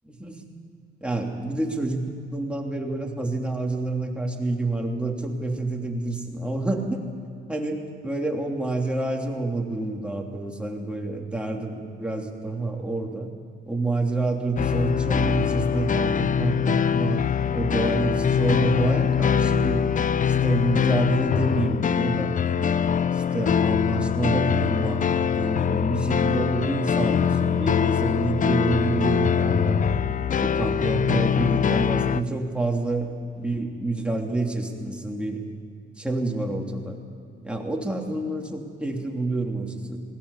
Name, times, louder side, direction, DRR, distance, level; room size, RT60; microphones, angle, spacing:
voice 1, 0.1-0.4 1.0-7.1 7.5-13.3 13.7-17.2 17.5-19.8 20.2-22.3 23.1-25.0 25.3-29.8 30.3-35.4 36.0-37.0 37.4-40.0, right 2 dB, 5° right, 0 dB, 3.2 m, -28 dB
sound 1, 14.6-32.2, left 7 dB, 40° left, 0.6 m, -23 dB
20.5 x 17.0 x 8.5 m, 2.5 s
cardioid pair, 90°, 20 cm